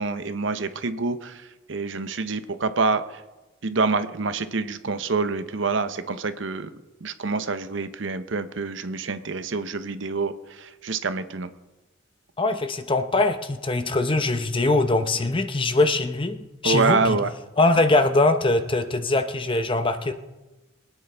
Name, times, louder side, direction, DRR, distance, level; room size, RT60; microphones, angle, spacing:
voice 1, 0.0-1.4 1.7-3.2 3.6-6.7 7.0-11.5 16.6-17.3, right 4 dB, 65° right, 11 dB, 0.8 m, -26 dB
voice 2, 12.4-16.4 16.6-17.2 17.6-20.1, left 2 dB, 25° left, 8 dB, 0.7 m, -22 dB
23.5 x 9.2 x 3.4 m, 1.1 s
head